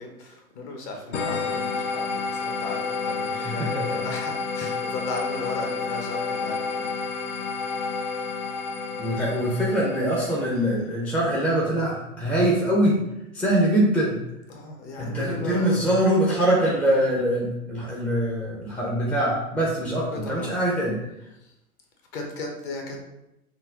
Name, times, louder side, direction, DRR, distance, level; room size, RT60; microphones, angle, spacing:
voice 1, 0.0-6.9 14.5-16.4 20.1-20.5 21.4-21.5 22.1-23.0, left 2 dB, 40° left, 2 dB, 1.2 m, -36 dB
sound 1, 1.1-10.5, left 4 dB, 55° left, 0.9 m, -30 dB
voice 2, 3.3-4.0 8.9-13.0 13.3-14.2 15.0-21.0, right 1 dB, 5° left, -5 dB, 0.6 m, -23 dB
5.7 x 2.2 x 3.8 m, 0.88 s
figure-of-eight pair, 110°, 45 cm